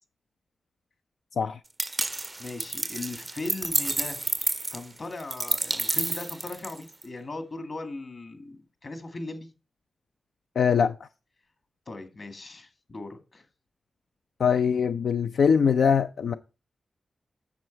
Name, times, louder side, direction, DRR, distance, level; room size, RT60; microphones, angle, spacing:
sound 1, 1.8-7.0, right 2 dB, 25° right, 0.4 m, -30 dB
voice 1, 2.4-9.5 11.9-13.4, left 2 dB, 50° left, 2.1 m, -38 dB
voice 2, 10.6-11.0 14.4-16.3, left 6 dB, 85° left, 0.4 m, -22 dB
9.4 x 7.2 x 4.5 m
wide cardioid pair, 100°, 0 cm